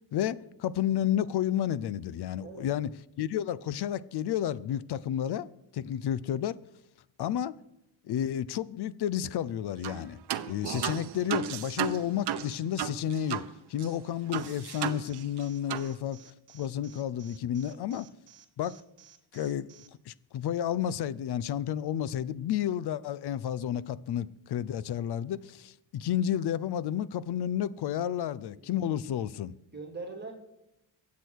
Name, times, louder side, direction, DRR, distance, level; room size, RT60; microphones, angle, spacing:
voice 1, 0.1-2.9 3.2-5.5 5.7-6.6 7.2-7.6 8.0-10.2 10.4-13.4 13.7-18.1 18.6-18.8 19.3-19.7 20.1-29.5, left 10 dB, 60° left, 0.7 m, -31 dB
sound 1, 9.8-10.0 10.3-13.5 13.8-13.9 14.3-15.4 15.7-15.9, right 9 dB, 60° right, 0.8 m, -34 dB
Alarm, 14.3-19.9, right 8 dB, 40° right, 1.6 m, -56 dB
voice 2, 27.9-28.8 29.7-30.3, right 3 dB, 20° right, 2.7 m, -44 dB
23.0 x 8.4 x 4.7 m
cardioid pair, 130°, 46 cm